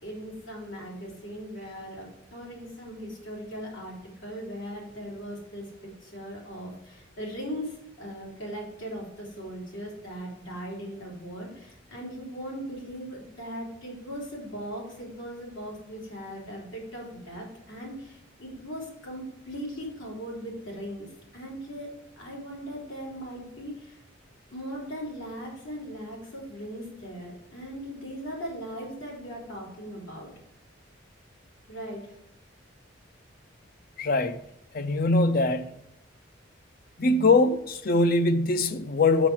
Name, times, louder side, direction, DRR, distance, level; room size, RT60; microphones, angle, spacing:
voice 1, 0.0-21.9 22.2-24.0 24.5-30.3 31.7-32.2, equal, 80° left, 3.4 m, -39 dB
voice 2, 34.0-34.4 34.7-35.7 37.0-39.3, left 2 dB, 50° left, 0.5 m, -22 dB
6.1 x 6.0 x 6.0 m
head